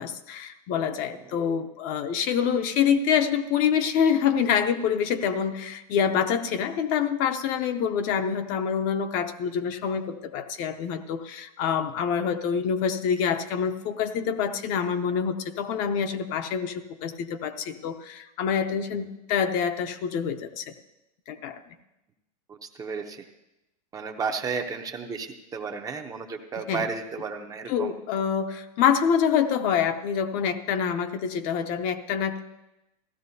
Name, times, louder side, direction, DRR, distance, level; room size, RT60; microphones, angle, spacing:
voice 1, 0.0-20.7 21.3-21.6 26.7-26.9 27.7-32.4, left 7 dB, 40° left, 8 dB, 0.7 m, -26 dB
voice 2, 0.8-1.2 22.5-23.3 23.9-27.9, right 5 dB, 15° right, 5 dB, 0.7 m, -33 dB
15.5 x 13.0 x 2.7 m, 0.95 s
supercardioid pair, 145°, 20 cm